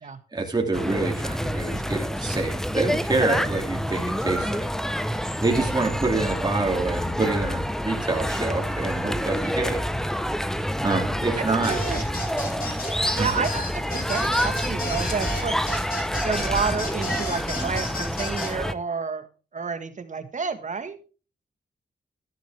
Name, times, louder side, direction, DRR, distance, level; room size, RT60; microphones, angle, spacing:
voice 1, 0.3-4.7 5.4-9.8 10.8-11.8 13.1-13.3, right 3 dB, 25° right, 1 dB, 2.7 m, -26 dB
sound 1, 0.7-18.7, equal, 5° left, 0.8 m, -27 dB
voice 2, 11.4-12.0 13.1-15.6 16.2-19.3 19.5-21.0, right 5 dB, 45° right, 9 dB, 1.6 m, -30 dB
sound 2, 11.6-18.5, left 1 dB, 60° left, 6.9 m, -33 dB
12.5 x 11.0 x 3.5 m, 0.35 s
cardioid pair, 75°, 18 cm